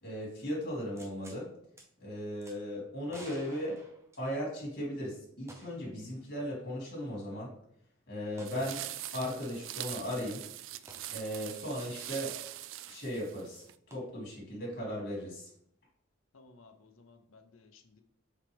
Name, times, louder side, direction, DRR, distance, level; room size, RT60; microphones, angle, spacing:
voice 1, 0.0-1.5 2.0-3.8 4.2-7.5 8.1-8.8 9.1-10.4 11.1-12.4 12.9-13.6 13.9-15.5, equal, 45° left, -4 dB, 2.8 m, -37 dB
sound 1, 1.0-1.4 1.8-1.9 2.4-2.6 3.1-4.6 5.5-5.9 6.2-6.3 8.4-8.6 10.9-11.1 13.9-14.0, right 1 dB, 15° right, 1.0 m, -52 dB
sound 2, 8.4-13.7, right 13 dB, 65° right, 0.3 m, -43 dB
voice 2, 16.3-18.0, left 3 dB, 85° left, 7 dB, 0.8 m, -58 dB
7.6 x 4.0 x 3.5 m, 0.69 s
head